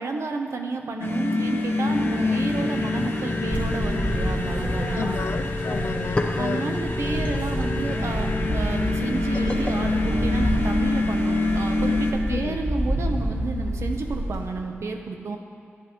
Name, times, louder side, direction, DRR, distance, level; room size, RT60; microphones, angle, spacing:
voice 1, 0.0-5.2 6.4-15.4, right 3 dB, 85° right, 4 dB, 0.9 m, -31 dB
sound 1, 1.0-12.1, left 2 dB, 55° left, 1.2 m, -26 dB
sound 2, 3.5-6.4 6.7-14.4, equal, 30° right, 2.7 m, -29 dB
voice 2, 4.9-6.7 12.3-12.6, left 6 dB, 75° left, 11 dB, 0.4 m, -31 dB
sound 3, 5.9-11.0, left 2 dB, 25° left, 0.9 m, -36 dB
14.5 x 10.0 x 3.1 m, 2.2 s
wide cardioid pair, 125°, 5 cm